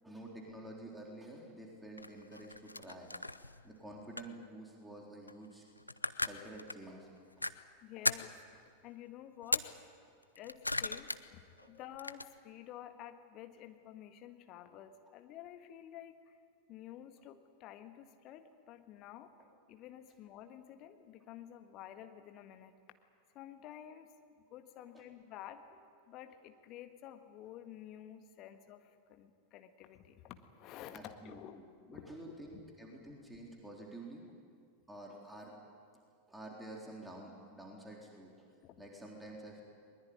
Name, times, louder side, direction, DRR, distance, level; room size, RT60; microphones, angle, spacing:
voice 1, 0.0-3.2 3.6-5.6 6.2-7.1 7.4-7.5 10.1-10.2 11.6-11.7 24.9-25.0 30.9-34.2 34.9-35.5 36.3-38.5 38.8-39.6, right 1 dB, 5° right, -1 dB, 3.9 m, -49 dB
sound 1, 2.0-3.7 4.2-4.4 5.3-5.4 5.8-6.8 7.4-7.5 8.0-8.4 9.4-9.7 10.2-11.2 11.6-12.2, left 2 dB, 85° left, 0.6 m, -37 dB
voice 2, 7.8-9.7 10.4-16.4 16.7-19.3 19.7-22.7 23.3-25.7 26.1-31.6 31.9-32.6 38.6-38.8, left 11 dB, 40° left, 7 dB, 1.8 m, -51 dB
21.5 x 20.5 x 9.7 m, 2.2 s
figure-of-eight pair, 90°, 0 cm